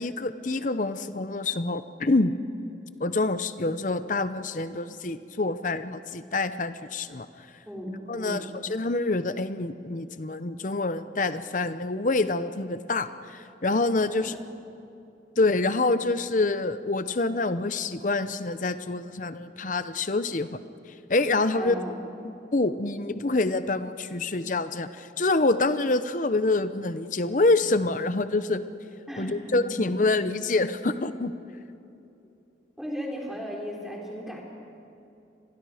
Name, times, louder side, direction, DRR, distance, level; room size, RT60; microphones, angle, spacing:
voice 1, 0.0-2.4 3.0-7.3 8.1-8.4 8.7-14.3 15.4-20.5 21.1-21.8 22.5-28.6 29.2-31.3, left 2 dB, 45° left, 12 dB, 0.8 m, -26 dB
voice 2, 7.7-8.4 14.1-14.4 21.5-22.0 29.1-29.7 32.8-34.4, equal, ahead, -2 dB, 3.6 m, -36 dB
29.5 x 22.5 x 5.0 m, 2.7 s
head